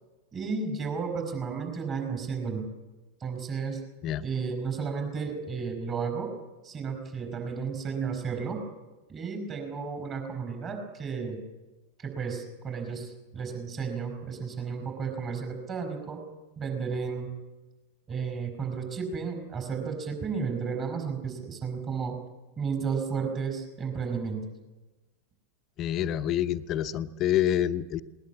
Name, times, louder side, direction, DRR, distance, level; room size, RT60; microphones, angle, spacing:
voice 1, 0.3-2.7 3.2-3.9 4.2-6.3 6.6-8.6 9.1-11.4 12.0-16.2 16.6-17.3 18.1-22.2 22.6-24.5, right 5 dB, 25° right, 4 dB, 5.3 m, -33 dB
voice 2, 25.8-28.0, left 11 dB, 35° left, 11 dB, 0.9 m, -27 dB
20.0 x 19.5 x 8.7 m, 1.2 s
figure-of-eight pair, 90°, 0 cm